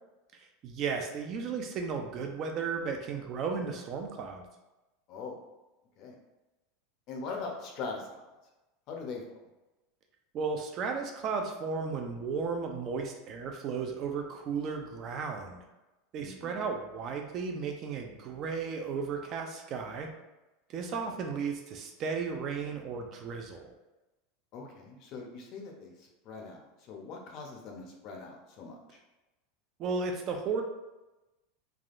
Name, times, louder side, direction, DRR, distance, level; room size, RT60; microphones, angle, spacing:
voice 1, 0.3-4.4 10.3-15.7 16.1-20.1 20.7-23.7 29.8-30.6, right 5 dB, 35° right, 3 dB, 0.3 m, -34 dB
voice 2, 7.1-8.1 8.9-9.4 16.2-16.6 21.0-21.1 24.5-29.0, left 4 dB, 40° left, 1 dB, 0.5 m, -42 dB
3.3 x 2.3 x 2.4 m, 1.0 s
supercardioid pair, 160°, 0 cm